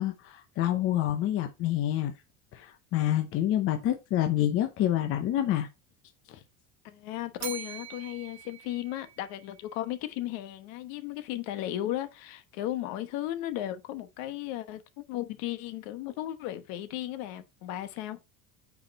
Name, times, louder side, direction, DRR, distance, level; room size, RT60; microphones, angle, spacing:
voice 1, 0.0-2.1 2.5-5.7 6.3-6.4, left 12 dB, 30° left, 0.8 m, -27 dB
voice 2, 6.8-18.2, left 13 dB, 55° left, 1.2 m, -35 dB
Bell, 7.4-9.6, right 11 dB, 55° right, 2.0 m, -42 dB
9.0 x 4.8 x 4.1 m
cardioid pair, 180°, 42 cm